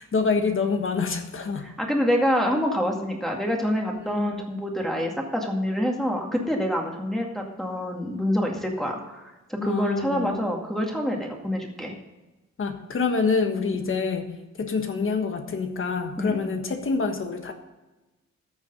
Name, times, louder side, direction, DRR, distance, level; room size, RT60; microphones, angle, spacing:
voice 1, 0.0-1.7 3.9-4.4 9.6-10.3 12.6-14.3 14.6-17.5, left 4 dB, 45° left, 6 dB, 1.4 m, -26 dB
voice 2, 1.6-11.9 13.8-13.9 16.2-16.5, equal, ahead, -1 dB, 2.1 m, -26 dB
13.5 x 7.1 x 5.5 m, 1.1 s
wide cardioid pair, 125°, 29 cm